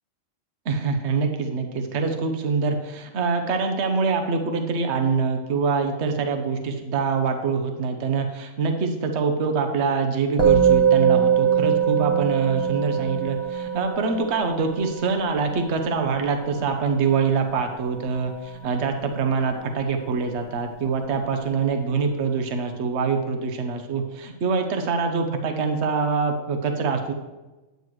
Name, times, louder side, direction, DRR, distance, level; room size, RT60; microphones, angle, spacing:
voice 1, 0.7-27.1, right 5 dB, 60° right, 5 dB, 1.1 m, -24 dB
Musical instrument, 10.4-19.9, right 8 dB, 35° right, 1.0 m, -23 dB
9.3 x 9.2 x 3.1 m, 1.1 s
omnidirectional pair, 1.3 m